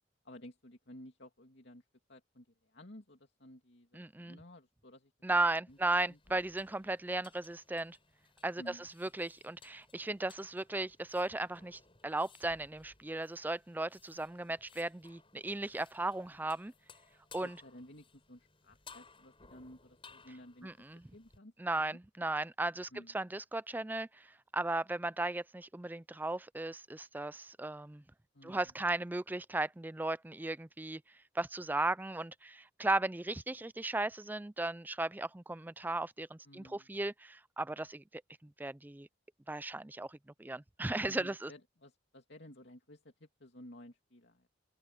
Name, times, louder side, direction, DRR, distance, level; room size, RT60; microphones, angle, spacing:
voice 1, 0.2-5.4 5.7-5.8 6.1-6.4 8.6-9.1 17.4-20.7 21.1-22.0 22.9-23.2 28.3-28.7 36.4-36.9 41.1-44.5, left 1 dB, 65° left, 2.8 m, -55 dB
voice 2, 3.9-4.4 5.2-8.0 8.4-16.7 17.3-17.6 20.6-21.0 21.6-28.0 28.4-31.0 31.3-39.1 39.5-41.5, right 2 dB, 10° right, 0.4 m, -36 dB
sound 1, 5.7-21.4, left 5 dB, 30° left, 6.7 m, -61 dB
open air
head